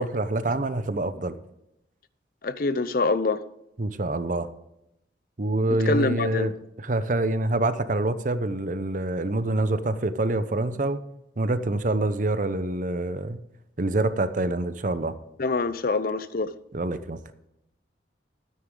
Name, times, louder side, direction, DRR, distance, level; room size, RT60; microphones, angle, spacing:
voice 1, 0.0-1.4 3.8-4.5 5.4-6.5 6.8-11.0 11.4-13.4 13.8-15.2 16.7-17.2, right 2 dB, 45° right, 0.7 m, -26 dB
voice 2, 2.4-3.4 5.9-6.5 15.4-16.5, left 3 dB, 55° left, 0.6 m, -25 dB
13.0 x 9.4 x 3.8 m
head